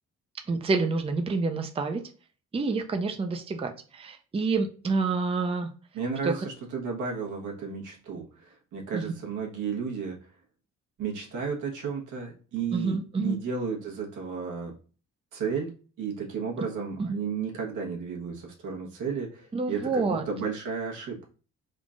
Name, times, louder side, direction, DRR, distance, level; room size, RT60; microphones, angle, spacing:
voice 1, 0.5-2.0 2.5-5.7 6.2-6.4 8.9-9.1 12.7-13.4 17.0-17.2 19.5-20.2, right 3 dB, 20° right, 5 dB, 0.5 m, -28 dB
voice 2, 5.9-10.2 11.0-14.7 15.3-15.7 16.0-21.3, right 6 dB, 80° right, -1 dB, 1.3 m, -33 dB
3.7 x 2.4 x 3.7 m, 0.38 s
cardioid pair, 90°, 30 cm